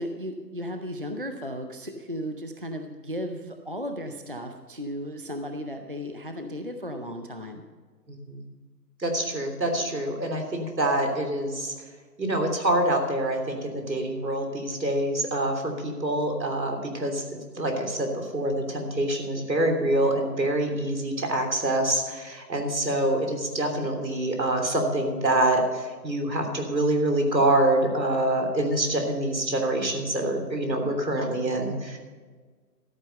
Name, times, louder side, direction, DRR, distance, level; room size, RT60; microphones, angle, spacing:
voice 1, 0.0-7.6, equal, 35° right, 5 dB, 0.5 m, -35 dB
voice 2, 9.0-11.7 12.2-17.2 17.6-32.0, right 1 dB, 85° right, 4 dB, 3.3 m, -26 dB
14.0 x 9.2 x 5.4 m, 1.5 s
figure-of-eight pair, 165°, 50 cm